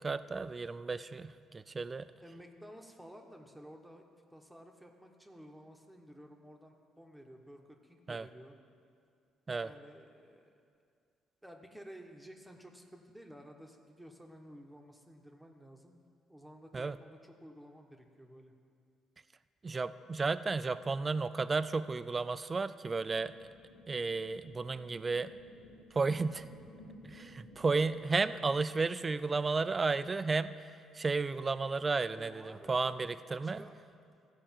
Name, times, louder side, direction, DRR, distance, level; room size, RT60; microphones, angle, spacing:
voice 1, 0.0-2.1 8.1-8.3 9.5-9.7 16.7-17.0 19.6-23.5 23.9-25.3 25.9-26.5 27.0-30.7 30.9-33.6, right 4 dB, 30° right, 14 dB, 0.4 m, -33 dB
voice 2, 2.2-4.0 4.3-8.6 9.6-10.5 11.4-16.0 16.3-18.5 32.1-32.9 33.3-33.8, equal, 5° right, 2 dB, 1.1 m, -53 dB
sound 1, 22.9-27.9, left 1 dB, 80° left, 1.2 m, -56 dB
14.0 x 5.0 x 7.3 m, 2.4 s
supercardioid pair, 80°, 0 cm